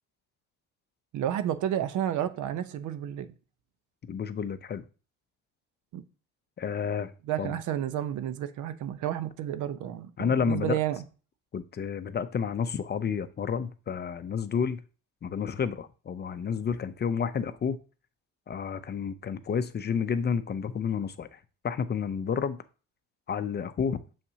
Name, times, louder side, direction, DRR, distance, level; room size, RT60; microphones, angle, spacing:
voice 1, 1.1-3.3 5.9-6.0 7.3-11.0, right 11 dB, 65° right, 0.8 m, -31 dB
voice 2, 4.1-4.8 6.6-7.1 7.4-7.6 10.2-10.8 11.5-14.8 15.2-17.8 18.5-21.4 21.6-22.6 23.3-24.0, left 6 dB, 30° left, 0.6 m, -30 dB
7.3 x 5.4 x 2.8 m
supercardioid pair, 80°, 33 cm